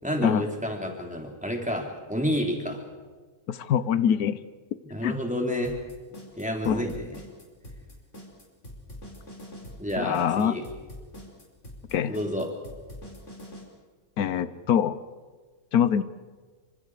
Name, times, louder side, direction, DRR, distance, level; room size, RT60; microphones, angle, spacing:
voice 1, 0.0-2.8 4.8-5.8 6.4-7.0 9.8-10.6 12.1-12.5, equal, 5° right, 1 dB, 3.5 m, -29 dB
voice 2, 3.5-4.4 5.0-5.2 6.6-6.8 10.0-10.6 11.9-12.2 14.2-15.0 15.7-16.0, left 8 dB, 85° left, 14 dB, 1.4 m, -24 dB
sound 1, 5.6-13.6, left 1 dB, 55° left, 5.0 m, -44 dB
27.5 x 26.0 x 4.9 m, 1.4 s
omnidirectional pair, 1.5 m